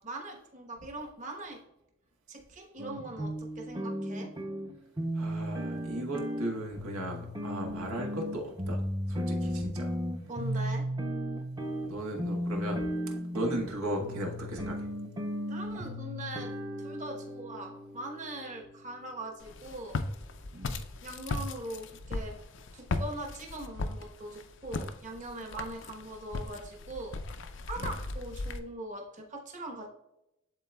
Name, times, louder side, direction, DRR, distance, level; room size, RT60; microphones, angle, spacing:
voice 1, 0.0-1.6 2.3-4.3 10.3-10.9 15.5-16.5 16.8-20.0 21.0-22.4 22.7-27.2 27.6-29.9, right 1 dB, 35° right, 2 dB, 1.1 m, -41 dB
sound 1, 2.8-19.0, equal, 20° right, 0.7 m, -35 dB
voice 2, 5.1-8.8 9.1-9.9 11.8-12.8 13.3-14.9 20.5-20.7 27.8-27.9, right 1 dB, 90° right, 1 dB, 1.4 m, -36 dB
Walk footsteps, 19.4-28.6, left 3 dB, 60° left, 0.5 m, -37 dB
11.0 x 3.9 x 2.3 m, 0.90 s
head